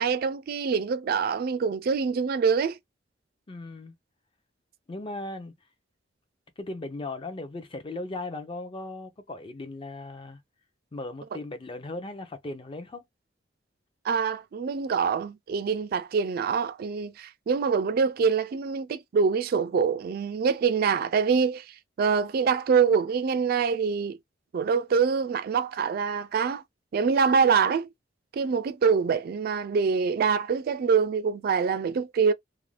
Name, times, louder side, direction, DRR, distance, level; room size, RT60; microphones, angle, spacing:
voice 1, 0.0-2.8 14.0-21.6 22.0-24.2 24.5-26.6 26.9-27.9 28.3-32.3, right 6 dB, 55° right, 0.3 m, -25 dB
voice 2, 3.5-3.9 4.9-5.5 6.6-10.4 10.9-13.0, left 2 dB, 30° left, 0.5 m, -37 dB
2.5 x 2.1 x 3.1 m
head